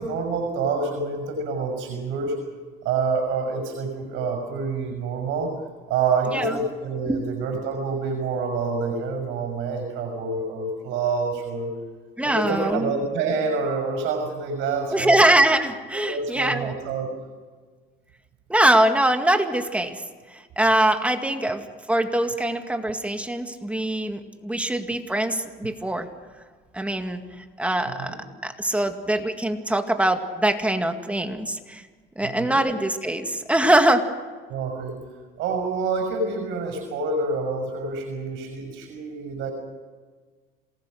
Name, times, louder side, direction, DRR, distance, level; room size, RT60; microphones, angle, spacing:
voice 1, 0.0-2.4 2.8-5.5 5.9-11.7 12.2-15.2 15.9-17.1 27.9-28.2 32.2-32.6 34.5-35.0 35.4-39.5, right 4 dB, 70° right, 4 dB, 5.9 m, -27 dB
voice 2, 6.3-6.6 7.1-7.3 12.2-12.9 14.9-16.7 18.5-20.0 20.3-26.1 26.7-28.2 28.4-31.8 32.2-34.0, right 1 dB, 5° right, 6 dB, 2.0 m, -23 dB
27.5 x 19.5 x 6.5 m, 1.5 s
cardioid pair, 115°, 20 cm